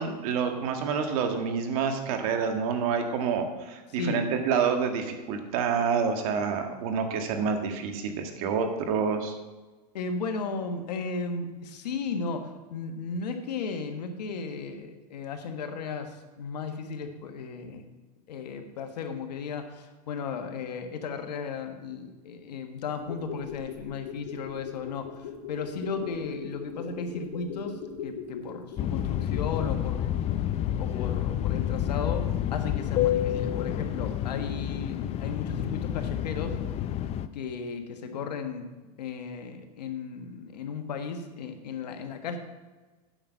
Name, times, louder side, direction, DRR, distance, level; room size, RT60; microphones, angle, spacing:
voice 1, 0.0-9.4, right 6 dB, 60° right, 5 dB, 1.7 m, -28 dB
voice 2, 4.0-4.3 9.9-17.9 18.3-30.2 30.7-32.2 32.5-36.6 37.3-38.7 39.0-42.4, left 5 dB, 90° left, 6 dB, 1.5 m, -35 dB
sound 1, 23.0-29.8 30.1-30.2, left 6 dB, 70° left, 2.2 m, -40 dB
sound 2, 28.8-37.3, left 11 dB, 30° left, 0.5 m, -29 dB
8.9 x 5.9 x 7.9 m, 1.2 s
supercardioid pair, 125°, 21 cm